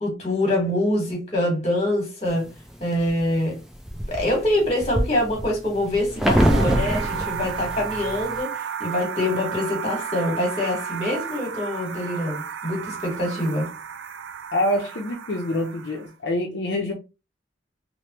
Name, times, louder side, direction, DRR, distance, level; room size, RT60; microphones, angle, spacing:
voice 1, 0.0-2.5 2.8-3.6 4.1-8.5 8.8-13.7, left 1 dB, 35° left, 1.3 m, -25 dB
sound 1, 2.4-3.1 3.6-8.4, equal, ahead, 0.4 m, -24 dB
sound 2, 6.4-16.1, right 8 dB, 90° right, 0.4 m, -33 dB
voice 2, 14.5-16.9, left 1 dB, 70° left, 0.5 m, -26 dB
3.3 x 2.0 x 2.9 m
head